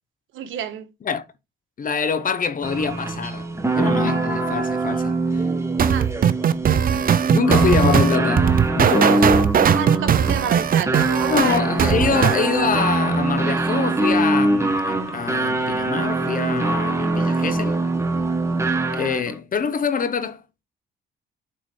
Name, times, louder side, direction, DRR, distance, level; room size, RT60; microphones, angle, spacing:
voice 1, 0.3-0.9 5.9-6.1 9.8-11.7, right 9 dB, 85° right, 1.4 m, -29 dB
voice 2, 1.8-3.5 3.8-5.5 7.3-9.4 11.3-17.8 18.9-20.4, left 6 dB, 45° left, 0.9 m, -25 dB
sound 1, 2.6-19.4, right 2 dB, 15° right, 1.2 m, -23 dB
sound 2, 5.8-12.4, right 8 dB, 45° right, 0.6 m, -19 dB
7.6 x 4.0 x 3.3 m
cardioid pair, 90°, 20 cm